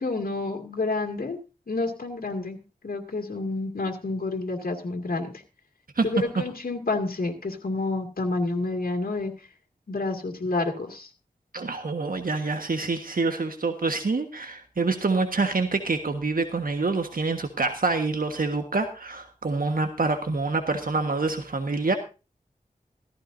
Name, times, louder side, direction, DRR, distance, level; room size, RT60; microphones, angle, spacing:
voice 1, 0.0-1.4 1.7-2.6 2.8-5.4 6.0-9.5 9.9-11.1, left 3 dB, 85° left, 2 dB, 2.2 m, -29 dB
voice 2, 11.5-22.0, right 3 dB, 75° right, 6 dB, 1.5 m, -26 dB
16.0 x 15.0 x 2.7 m, 0.31 s
wide cardioid pair, 65°, 15 cm